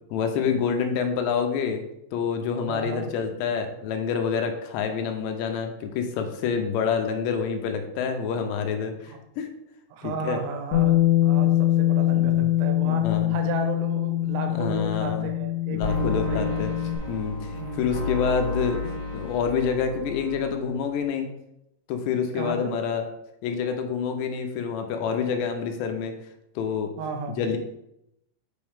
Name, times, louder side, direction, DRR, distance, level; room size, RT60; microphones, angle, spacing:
voice 1, 0.1-1.8 2.1-9.5 10.0-10.4 12.2-12.5 12.8-13.4 14.5-15.3 15.7-16.7 17.1-21.3 21.9-23.0 23.4-26.1 26.6-26.9 27.4-27.6, left 6 dB, 85° left, 5 dB, 2.8 m, -27 dB
voice 2, 2.7-3.2 9.1-9.2 9.9-16.6 17.5-18.0 22.3-22.7 25.0-25.4 27.0-27.6, right 4 dB, 85° right, 5 dB, 3.2 m, -34 dB
Bass guitar, 10.7-17.0, left 14 dB, 60° left, 2.1 m, -23 dB
sound 1, 15.8-20.7, left 2 dB, 60° right, 4.5 m, -31 dB
7.1 x 5.8 x 3.5 m, 0.83 s
omnidirectional pair, 5.2 m